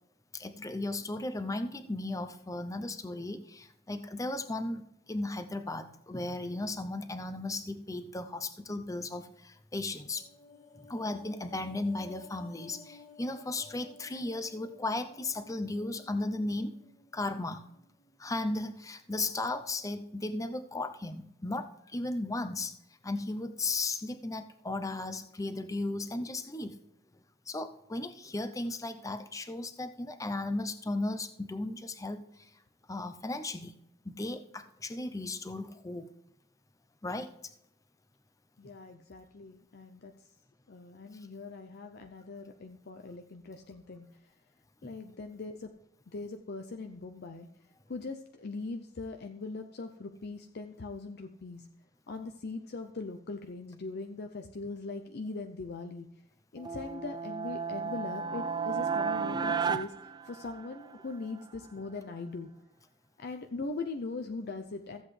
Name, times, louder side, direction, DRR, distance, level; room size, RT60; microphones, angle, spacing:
voice 1, 0.3-10.3 10.8-16.8 17.1-17.7 18.2-22.7 23.0-26.8 27.5-32.2 32.9-33.8 34.0-36.1 37.0-37.3 44.8-44.9, left 2 dB, 15° left, 9 dB, 0.6 m, -35 dB
sound 1, 10.0-18.4 18.7-18.9, left 3 dB, 40° left, 1.6 m, -56 dB
voice 2, 38.6-40.1 40.7-44.1 44.8-45.7 46.1-47.5 47.9-51.7 52.1-56.1 56.5-59.9 60.2-62.5 63.2-65.0, left 3 dB, 55° left, 5 dB, 0.6 m, -40 dB
sound 2, 56.6-60.9, right 6 dB, 20° right, 0.3 m, -33 dB
14.0 x 8.0 x 3.3 m, 0.81 s
head